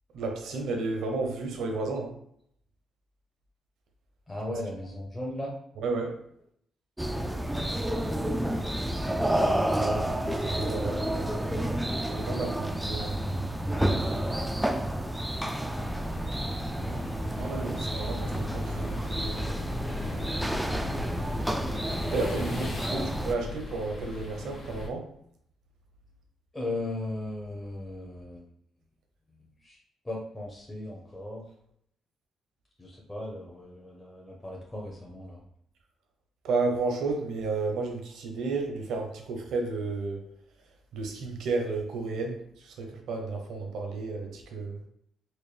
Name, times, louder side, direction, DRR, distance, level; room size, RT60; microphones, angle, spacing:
voice 1, 0.1-2.1 5.8-6.1 9.8-11.7 12.1-13.1 17.3-19.5 22.0-25.0 36.4-40.2 40.9-44.8, right 3 dB, 80° right, 3 dB, 0.8 m, -32 dB
voice 2, 4.3-5.6 7.1-7.9 22.6-23.1 26.5-28.5 29.6-29.8 30.0-31.5 32.8-35.4, left 1 dB, 15° left, -3 dB, 0.8 m, -37 dB
sound 1, 7.0-23.3, right 1 dB, 5° right, 0.3 m, -30 dB
sound 2, 15.7-24.9, left 3 dB, 40° left, 1.2 m, -39 dB
4.3 x 2.2 x 3.4 m, 0.70 s
cardioid pair, 90°, 0 cm